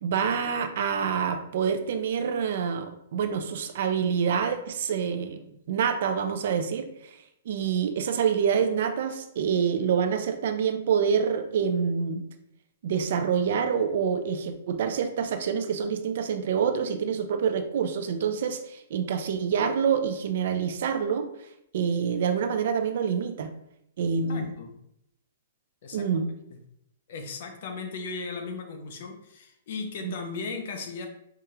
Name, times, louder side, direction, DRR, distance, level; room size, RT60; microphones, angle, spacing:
voice 1, 0.0-7.2 7.5-12.2 12.8-21.3 21.7-23.5 24.0-24.5 25.9-26.3 30.0-30.1, right 7 dB, 50° right, 7 dB, 0.3 m, -27 dB
voice 2, 24.3-24.7 25.8-26.1 26.5-26.6 27.1-31.1, left 4 dB, 45° left, 5 dB, 0.5 m, -36 dB
4.7 x 2.3 x 2.9 m, 0.76 s
hypercardioid pair, 175°, 0 cm